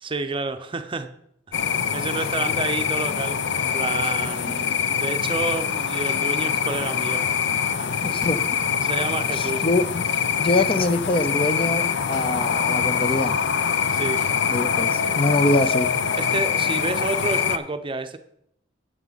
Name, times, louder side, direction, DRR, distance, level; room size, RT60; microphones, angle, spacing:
voice 1, 0.0-1.1 1.5-7.4 7.6-7.9 8.8-9.6 13.9-14.2 16.2-18.2, right 3 dB, 30° right, 9 dB, 0.6 m, -30 dB
sound 1, 1.5-17.6, left 7 dB, 65° left, 0.6 m, -24 dB
sound 2, 1.7-15.2, left 1 dB, 80° left, 4.4 m, -52 dB
voice 2, 8.0-8.4 9.3-10.0 10.4-13.3 14.5-15.9, left 2 dB, 30° left, 11 dB, 0.6 m, -24 dB
11.0 x 7.9 x 4.0 m, 0.73 s
head